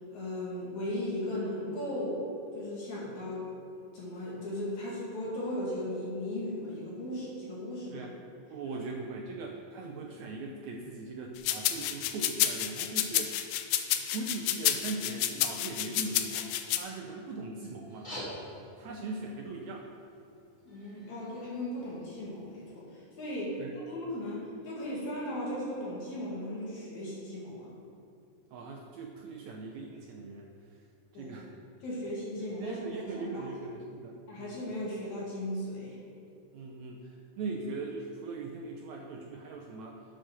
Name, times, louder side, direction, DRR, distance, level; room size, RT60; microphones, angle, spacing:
voice 1, 0.1-2.2 2.5-3.5 3.9-8.1 8.7-8.9 20.7-22.8 23.2-23.6 23.9-27.7 31.1-31.4 31.8-33.4 34.3-36.0, left 1 dB, 60° left, -6 dB, 3.2 m, -37 dB
voice 2, 8.5-13.4 14.1-18.1 18.8-19.9 23.6-23.7 28.5-30.5 31.1-31.5 32.4-34.6 36.5-40.0, right 3 dB, 75° right, 0 dB, 1.7 m, -40 dB
sound 1, 11.5-16.8, left 12 dB, 90° left, 2.3 m, -29 dB
sound 2, 17.8-22.8, equal, 20° left, 2.4 m, -48 dB
7.9 x 6.5 x 6.1 m, 2.6 s
omnidirectional pair, 3.8 m